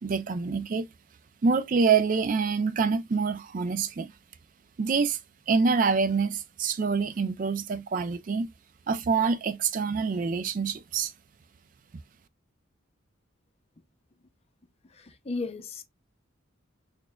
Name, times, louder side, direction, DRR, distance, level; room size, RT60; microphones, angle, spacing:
voice 1, 0.0-0.9 1.4-4.1 4.8-5.2 5.5-8.5 8.9-11.1, right 5 dB, 40° right, 0.3 m, -26 dB
voice 2, 15.0-15.8, left 3 dB, 30° left, 0.5 m, -35 dB
6.2 x 2.2 x 2.2 m
head